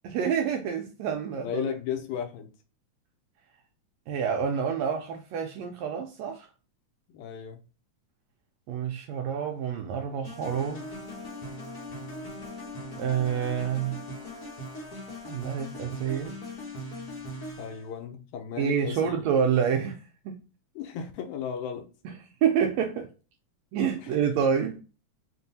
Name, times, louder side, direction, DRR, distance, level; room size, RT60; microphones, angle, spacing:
voice 1, 0.0-1.7 4.1-6.5 8.7-10.9 13.0-14.0 15.3-16.4 18.6-20.4 22.4-23.1 23.7-24.8, right 7 dB, 80° right, 1.6 m, -28 dB
voice 2, 1.4-2.5 7.1-7.6 17.6-19.2 20.8-21.9 24.0-24.1, left 8 dB, 80° left, 1.9 m, -35 dB
sound 1, 10.2-17.9, left 1 dB, 60° left, 0.9 m, -40 dB
5.4 x 2.6 x 2.7 m
omnidirectional pair, 3.5 m